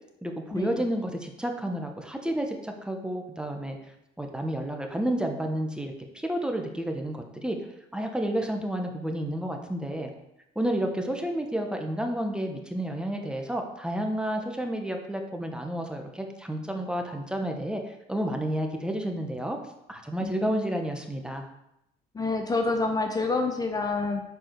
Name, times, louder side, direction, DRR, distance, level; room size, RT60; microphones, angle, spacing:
voice 1, 0.2-3.8 4.2-7.6 7.9-10.1 10.5-19.6 19.9-21.5, right 1 dB, 5° right, 3 dB, 0.9 m, -30 dB
voice 2, 22.1-24.2, left 3 dB, 20° left, 4 dB, 0.8 m, -27 dB
7.5 x 4.7 x 4.6 m, 0.84 s
cardioid pair, 110°, 17 cm